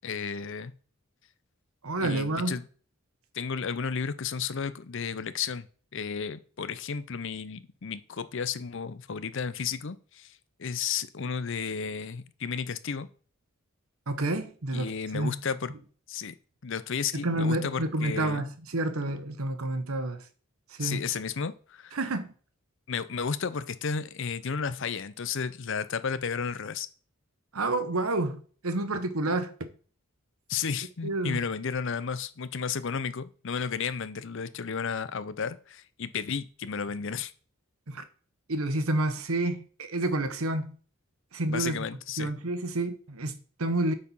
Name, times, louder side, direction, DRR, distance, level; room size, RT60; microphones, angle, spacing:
voice 1, 0.0-0.7 2.0-2.7 3.3-5.7 5.9-13.1 14.7-15.7 16.1-16.3 16.6-18.5 20.8-22.0 22.9-26.9 30.5-37.3 41.5-42.3, left 6 dB, 60° left, 0.6 m, -33 dB
voice 2, 1.8-2.5 14.1-15.4 17.2-20.2 20.8-21.1 21.9-22.3 27.5-28.4 28.6-29.5 31.0-31.4 37.9-38.0 38.5-40.8 41.3-41.8 42.2-43.9, right 2 dB, 85° right, 1.1 m, -29 dB
8.5 x 4.3 x 5.5 m
head